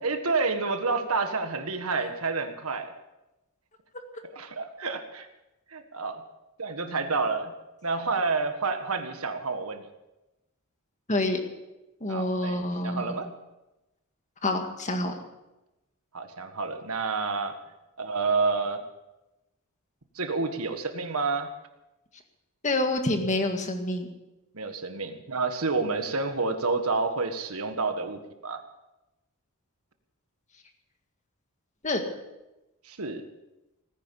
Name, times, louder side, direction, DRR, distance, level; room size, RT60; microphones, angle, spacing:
voice 1, 0.0-2.9 4.3-5.3 5.7-6.2 6.6-7.5 7.8-9.9 12.1-12.6 12.8-13.3 16.1-17.5 18.0-18.8 20.1-21.5 24.5-28.6 32.8-33.2, right 4 dB, 80° right, 7 dB, 1.7 m, -29 dB
voice 2, 11.1-11.4 12.0-13.2 14.4-15.1 22.6-24.1 31.8-32.0, left 2 dB, 35° left, 5 dB, 1.9 m, -27 dB
18.5 x 10.0 x 7.0 m, 0.99 s
head